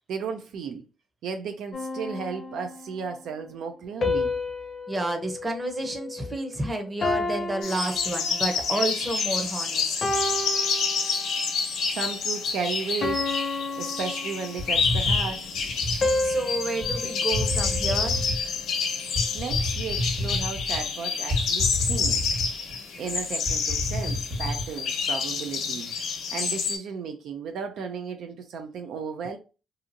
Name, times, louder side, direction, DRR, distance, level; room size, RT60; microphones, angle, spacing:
voice 1, 0.1-0.8 1.2-4.3 11.9-13.3 13.8-15.5 19.3-22.2 23.0-29.4, right 5 dB, 75° right, 0.4 m, -34 dB
sound 1, 1.7-3.0 4.0-6.5 7.0-8.7 9.3-9.5 10.0-11.5 12.0-12.3 13.0-14.9 16.0-18.4, left 2 dB, 45° left, 0.6 m, -31 dB
voice 2, 4.9-10.1 16.2-18.2, right 2 dB, 20° right, 0.7 m, -30 dB
sound 2, 7.6-26.8, left 5 dB, 75° left, 0.8 m, -28 dB
sound 3, 14.6-16.0 16.8-17.0 17.3-18.5 19.1-20.8 21.3-22.7 23.1-23.2 23.5-24.7, left 1 dB, 45° right, 1.2 m, -29 dB
2.7 x 2.5 x 2.6 m
cardioid pair, 90°, 0 cm